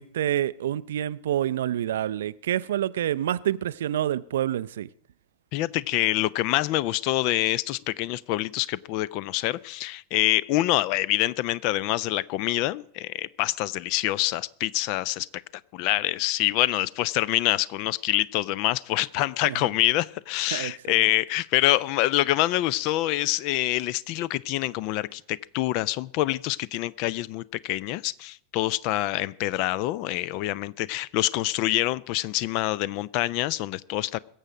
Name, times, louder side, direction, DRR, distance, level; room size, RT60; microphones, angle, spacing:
voice 1, 0.0-4.9 19.4-19.7 20.5-21.1, right 11 dB, 60° right, 0.4 m, -28 dB
voice 2, 5.5-15.3 15.7-34.2, left 16 dB, 45° left, 0.5 m, -26 dB
22.0 x 7.6 x 5.0 m
figure-of-eight pair, 90°, 0 cm